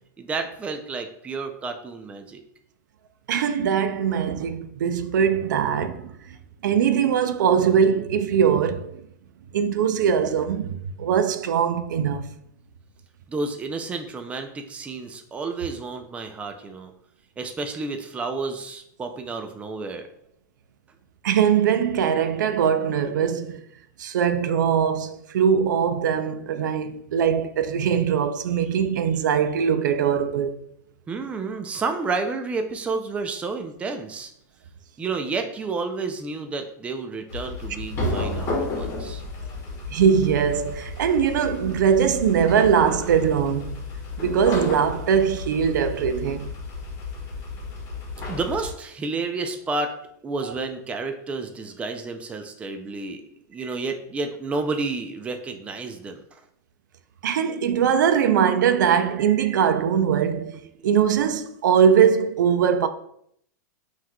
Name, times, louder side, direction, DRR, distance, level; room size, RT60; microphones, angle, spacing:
voice 1, 0.2-2.4 13.3-16.9 17.4-20.1 31.1-34.3 35.0-39.2 48.3-50.0 50.2-53.2 53.5-56.2 60.7-60.8, right 3 dB, 15° right, 0.4 m, -30 dB
voice 2, 3.3-6.4 6.6-9.0 9.5-12.3 21.2-23.6 24.0-30.6 39.9-43.8 44.2-46.5 57.2-62.9, right 7 dB, 85° right, 0.4 m, -21 dB
sound 1, 37.3-48.7, left 2 dB, 30° left, 1.3 m, -32 dB
5.6 x 3.1 x 2.2 m
supercardioid pair, 135°, 10 cm